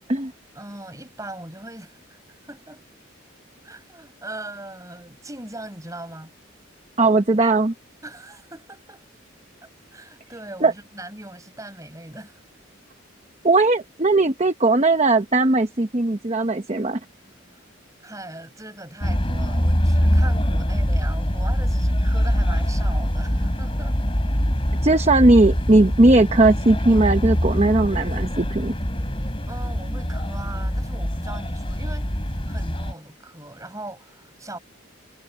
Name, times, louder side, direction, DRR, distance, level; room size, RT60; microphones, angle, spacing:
voice 1, 0.5-2.8 3.6-6.3 8.0-9.0 9.9-12.4 17.2-17.6 18.0-24.0 29.5-34.6, right 1 dB, 15° right, 7.4 m, -39 dB
voice 2, 7.0-7.7 10.6-10.7 13.4-17.0 24.8-28.7, right 2 dB, 30° right, 0.9 m, -18 dB
sound 1, 19.0-32.9, equal, 25° left, 4.0 m, -23 dB
head